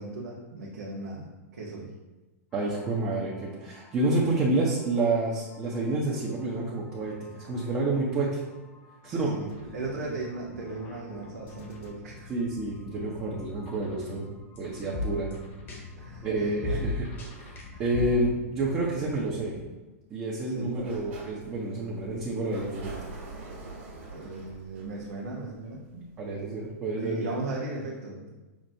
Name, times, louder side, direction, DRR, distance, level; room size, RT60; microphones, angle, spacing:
voice 1, 0.0-1.9 9.0-12.3 16.0-16.8 17.7-17.8 20.5-20.9 24.1-26.0 26.9-28.4, right 2 dB, 85° right, -5 dB, 0.8 m, -37 dB
sound 1, 2.5-18.3, left 2 dB, 25° left, 0.9 m, -42 dB
voice 2, 2.5-8.4 9.0-9.3 12.3-15.3 16.2-17.1 17.4-17.5 17.8-19.5 20.1-22.9 26.2-27.3, right 2 dB, 25° right, -5 dB, 0.7 m, -29 dB
sound 2, 9.5-19.7, left 3 dB, 55° left, 1.0 m, -47 dB
Sliding door, 20.6-26.3, right 3 dB, 65° right, 1.4 m, -45 dB
5.9 x 2.1 x 2.7 m, 1.1 s
hypercardioid pair, 130°, 8 cm